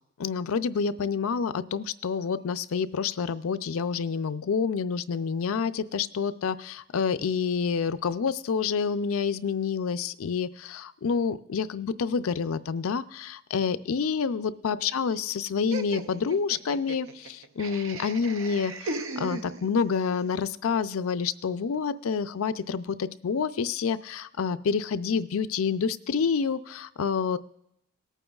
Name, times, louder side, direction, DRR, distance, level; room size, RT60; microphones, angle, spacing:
voice 1, 0.2-27.4, left 6 dB, 80° left, 13 dB, 0.4 m, -28 dB
Laughter, 15.7-20.0, right 2 dB, 65° right, 0.6 m, -37 dB
19.5 x 9.0 x 2.4 m, 0.79 s
head